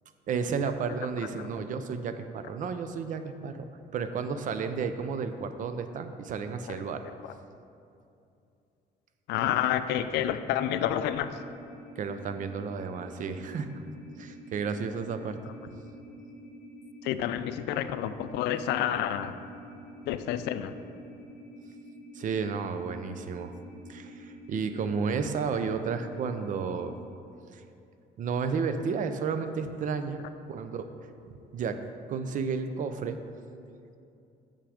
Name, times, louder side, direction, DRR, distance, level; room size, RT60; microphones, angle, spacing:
voice 1, 0.3-3.6 3.9-7.0 12.0-13.7 14.2-15.4 22.1-23.5 23.9-27.0 27.5-27.6 28.2-30.2 30.5-30.9 31.5-31.8 32.1-33.2, right 5 dB, 50° right, 9 dB, 0.5 m, -32 dB
voice 2, 9.3-11.4 17.0-19.4 20.1-20.7, left 10 dB, 80° left, 11 dB, 0.4 m, -29 dB
sound 1, 11.0-26.9, equal, 20° left, 1.5 m, -48 dB
6.6 x 5.8 x 5.0 m, 2.6 s
cardioid pair, 110°, 17 cm